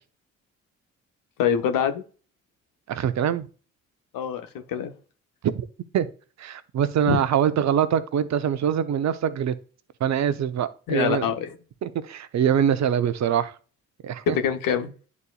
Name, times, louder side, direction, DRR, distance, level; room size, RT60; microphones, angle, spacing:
voice 1, 1.4-2.0 4.1-4.9 7.1-7.2 10.9-11.5 14.3-14.9, left 8 dB, 65° left, 1.0 m, -25 dB
voice 2, 2.9-3.5 5.4-5.5 5.9-6.1 6.4-9.5 10.0-11.3 11.8-13.5 14.0-14.4, right 9 dB, 50° right, 0.8 m, -23 dB
10.5 x 4.1 x 2.3 m
hypercardioid pair, 45°, 35 cm